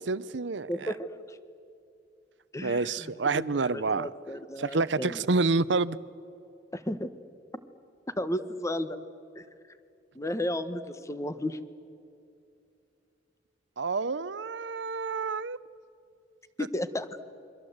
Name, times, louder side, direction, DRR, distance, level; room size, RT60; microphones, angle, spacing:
voice 1, 0.0-0.9 2.6-4.1 4.6-6.0 13.8-15.6, right 3 dB, 80° right, 0.7 m, -28 dB
voice 2, 0.7-1.4 2.5-5.2 6.7-7.1 8.2-9.0 9.3-9.4 10.1-11.6 16.6-17.1, left 1 dB, 15° left, 1.2 m, -33 dB
29.0 x 24.0 x 8.0 m
head